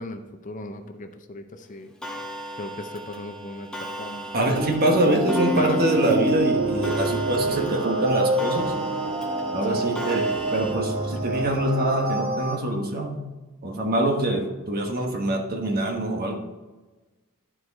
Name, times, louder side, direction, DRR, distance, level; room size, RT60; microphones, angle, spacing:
voice 1, 0.0-1.9 2.6-4.3 5.6-5.8 7.5-7.8 9.7-9.9, left 2 dB, 35° left, 7 dB, 0.6 m, -37 dB
Clock, 2.0-10.7, right 1 dB, 5° left, 0.9 m, -36 dB
voice 2, 4.3-8.7 9.5-13.2 13.6-16.4, right 1 dB, 45° right, 2 dB, 1.2 m, -24 dB
sound 1, 4.5-12.5, right 2 dB, 60° right, 1.6 m, -26 dB
12.5 x 4.7 x 4.1 m, 1.2 s
head